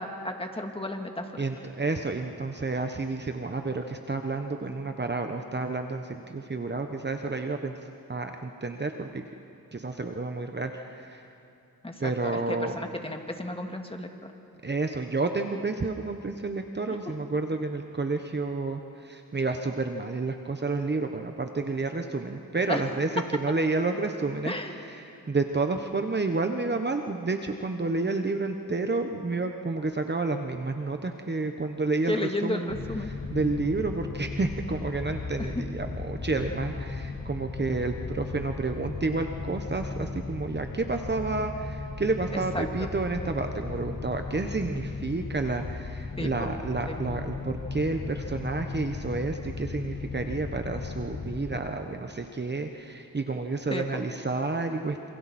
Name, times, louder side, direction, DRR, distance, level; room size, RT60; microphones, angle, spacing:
voice 1, 0.0-1.5 11.8-14.3 17.1-17.2 22.7-22.9 24.4-24.8 32.1-33.1 35.4-35.6 42.3-42.9 46.2-46.5 46.9-47.0 53.7-54.0, left 1 dB, 15° left, 4 dB, 2.2 m, -33 dB
voice 2, 1.4-7.7 8.1-9.2 9.7-11.2 12.0-12.7 14.6-23.1 23.4-24.5 25.0-32.7 33.3-55.1, right 3 dB, 30° right, 5 dB, 1.2 m, -30 dB
sound 1, 32.7-51.6, left 4 dB, 30° left, 1.8 m, -36 dB
27.0 x 27.0 x 4.4 m, 2.7 s
cardioid pair, 70°, 37 cm